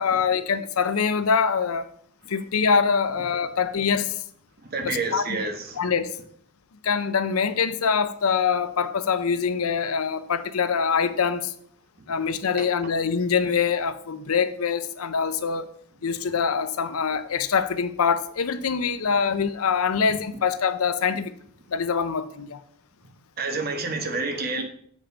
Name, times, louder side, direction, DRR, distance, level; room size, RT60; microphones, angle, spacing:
voice 1, 0.0-1.9 2.3-4.2 4.8-5.2 5.8-6.2 6.8-11.5 12.1-15.7 16.0-21.3 21.7-22.6, left 6 dB, 90° left, 0.6 m, -24 dB
voice 2, 4.7-5.8 23.4-24.6, right 3 dB, 45° right, 1.2 m, -28 dB
7.3 x 5.5 x 4.9 m
head